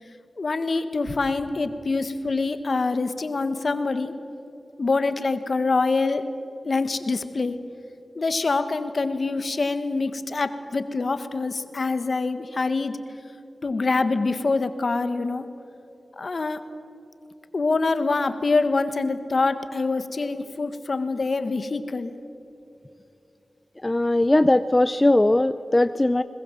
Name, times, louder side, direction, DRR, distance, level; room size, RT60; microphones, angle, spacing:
voice 1, 0.4-4.1 4.8-6.2 6.6-7.6 8.1-13.0 13.6-15.5 16.2-16.6 17.5-22.1, left 3 dB, 60° left, 10 dB, 1.5 m, -25 dB
voice 2, 23.8-26.2, left 1 dB, 25° left, 13 dB, 0.6 m, -19 dB
21.5 x 20.5 x 7.4 m, 2.8 s
cardioid pair, 45°, 0 cm